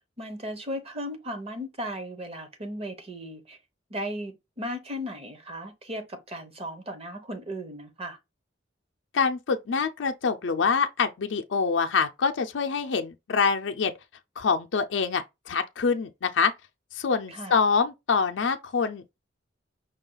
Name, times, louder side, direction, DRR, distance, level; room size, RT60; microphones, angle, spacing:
voice 1, 0.2-3.6 3.9-8.2 17.3-17.5, equal, 35° right, 1.0 m, -36 dB
voice 2, 9.1-13.9 14.4-16.5 16.9-19.2, left 5 dB, 80° left, 0.5 m, -25 dB
5.5 x 2.3 x 3.9 m
head